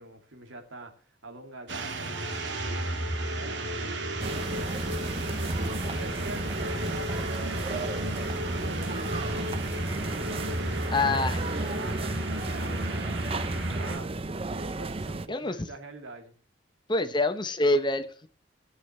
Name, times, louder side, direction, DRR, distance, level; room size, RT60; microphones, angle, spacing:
voice 1, 0.0-5.5 6.0-10.9 11.4-16.3, right 2 dB, 90° right, 2.3 m, -45 dB
sound 1, 1.7-14.0, right 1 dB, 65° right, 2.0 m, -33 dB
sound 2, 4.2-15.3, right 2 dB, 30° right, 0.5 m, -34 dB
voice 2, 10.9-11.4 15.3-15.5 16.9-18.3, left 2 dB, 25° left, 0.8 m, -26 dB
18.5 x 7.7 x 3.2 m
head